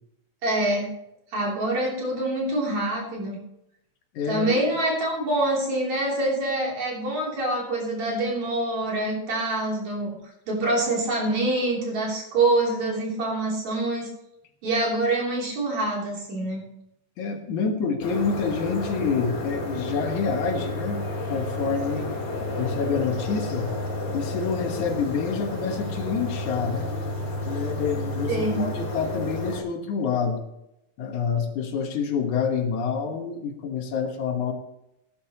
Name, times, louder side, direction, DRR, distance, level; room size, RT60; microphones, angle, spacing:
voice 1, 0.4-0.9 1.3-3.4 4.3-10.1 10.5-14.1 14.6-16.6 28.3-28.6, right 2 dB, 60° right, -3 dB, 4.6 m, -25 dB
voice 2, 4.1-4.7 17.2-22.1 22.6-23.7 24.1-26.9 27.4-30.4 31.0-34.5, left 6 dB, 75° left, 4 dB, 2.7 m, -27 dB
sound 1, 18.0-29.6, left 1 dB, 45° left, 4.2 m, -31 dB
17.5 x 10.5 x 3.0 m, 0.83 s
omnidirectional pair, 3.6 m